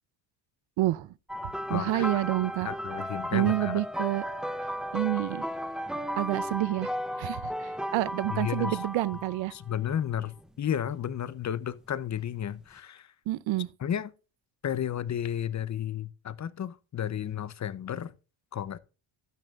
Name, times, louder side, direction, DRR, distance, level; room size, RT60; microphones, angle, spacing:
voice 1, 0.8-1.1 1.7-2.7 3.3-4.3 4.9-5.5 6.2-6.9 7.2-9.5 13.3-13.7, right 16 dB, 80° right, 0.7 m, -28 dB
sound 1, 1.3-9.6 10.4-10.7 12.5-12.6, equal, ahead, 0.7 m, -35 dB
voice 2, 1.7-2.1 2.6-3.8 8.3-8.8 9.5-13.1 13.8-14.1 14.6-18.1 18.5-18.8, left 9 dB, 40° left, 0.7 m, -32 dB
12.0 x 9.3 x 2.4 m
cardioid pair, 110°, 45 cm